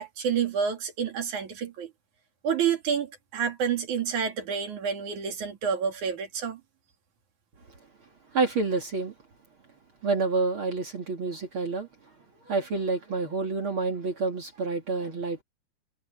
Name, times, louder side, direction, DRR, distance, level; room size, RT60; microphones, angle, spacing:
voice 1, 0.0-1.9 2.4-6.6, right 7 dB, 60° right, 3.7 m, -29 dB
voice 2, 8.3-9.1 10.0-11.9 12.5-15.4, right 3 dB, 40° right, 2.7 m, -28 dB
omnidirectional pair, 4.2 m